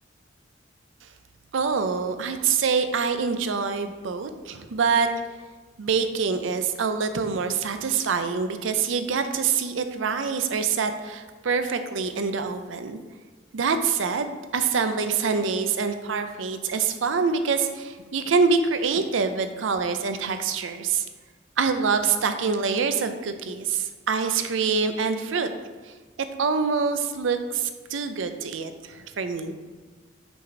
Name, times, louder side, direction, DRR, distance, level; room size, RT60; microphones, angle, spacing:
voice 1, 1.5-5.1 5.8-13.0 13.5-21.1 21.6-25.5 26.4-29.5, right 5 dB, 80° right, 8 dB, 0.5 m, -25 dB
6.0 x 4.5 x 4.0 m, 1.4 s
head